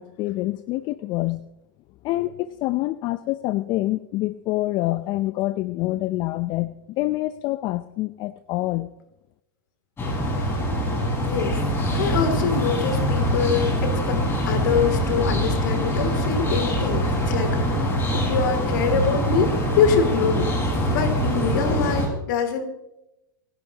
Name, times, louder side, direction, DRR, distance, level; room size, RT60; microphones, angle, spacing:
voice 1, 0.0-1.4 2.0-8.9, left 17 dB, 40° left, 14 dB, 0.6 m, -26 dB
sound 1, 10.0-22.1, equal, 20° left, 5.5 m, -24 dB
voice 2, 11.2-11.6 11.9-14.2 14.5-17.8 18.1-19.5 19.8-20.5 20.9-22.6, left 6 dB, 60° left, 6 dB, 2.8 m, -24 dB
28.0 x 11.0 x 2.9 m, 0.89 s
hypercardioid pair, 105°, 11 cm